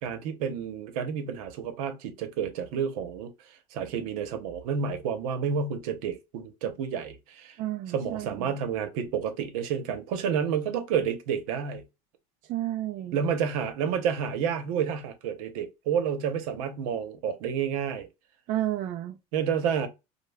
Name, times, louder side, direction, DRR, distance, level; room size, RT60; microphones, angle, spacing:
voice 1, 0.0-3.3 3.7-7.6 7.9-11.8 13.1-18.1 19.3-19.9, right 7 dB, 75° right, 0.9 m, -30 dB
voice 2, 7.6-8.5 12.4-13.2 18.5-19.2, right 14 dB, 45° right, 0.5 m, -32 dB
5.2 x 2.2 x 2.3 m
supercardioid pair, 115°, 18 cm